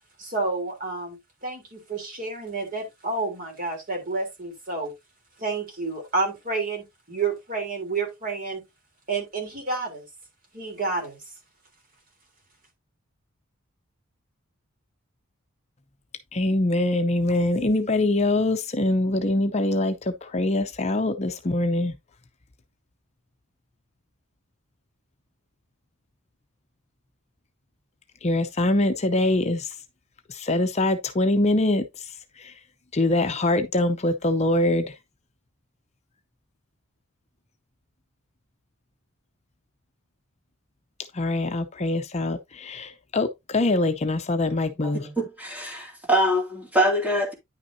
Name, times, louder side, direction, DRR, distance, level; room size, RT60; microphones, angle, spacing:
voice 1, 0.2-4.9 5.4-8.6 9.1-10.0 10.5-11.2, right 3 dB, 40° right, 3.4 m, -30 dB
voice 2, 16.3-21.9 28.2-29.8 30.3-32.6 32.9-35.0 41.1-45.1, left 2 dB, 30° left, 0.6 m, -24 dB
voice 3, 44.9-47.3, right 1 dB, 5° right, 2.4 m, -24 dB
9.9 x 5.7 x 2.7 m
head